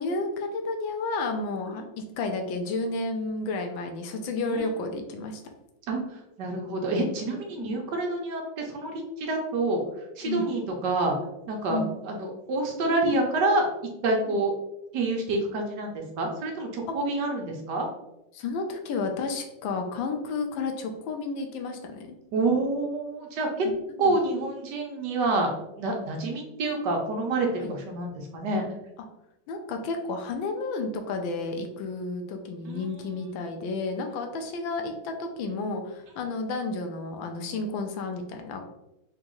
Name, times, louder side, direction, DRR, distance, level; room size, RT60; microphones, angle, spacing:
voice 1, 0.0-5.5 7.6-7.7 10.2-10.5 11.7-11.9 14.3-14.4 16.9-17.0 18.3-22.2 23.9-24.2 27.6-27.7 29.5-38.6, left 3 dB, 85° left, 4 dB, 1.4 m, -31 dB
voice 2, 6.4-9.8 10.2-11.1 11.5-11.8 12.1-13.7 14.0-14.5 14.9-17.8 22.3-23.7 24.0-25.5 25.8-28.6 32.7-32.9, right 2 dB, 65° right, 1 dB, 1.3 m, -27 dB
4.1 x 3.0 x 3.7 m, 0.89 s
omnidirectional pair, 2.1 m